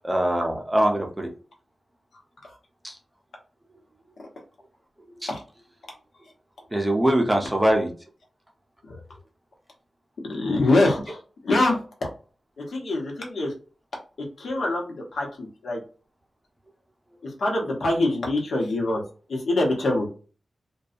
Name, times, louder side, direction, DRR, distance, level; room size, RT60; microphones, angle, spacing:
voice 1, 0.0-1.3 2.8-3.0 5.2-5.3 6.7-7.9, right 1 dB, 10° right, 1 dB, 0.5 m, -22 dB
voice 2, 10.3-11.2 11.4-11.8 12.7-13.5 14.4-15.8 17.4-19.0 19.3-20.1, left 2 dB, 85° left, -1 dB, 0.9 m, -24 dB
2.6 x 2.3 x 2.4 m, 0.38 s
wide cardioid pair, 145°, 0 cm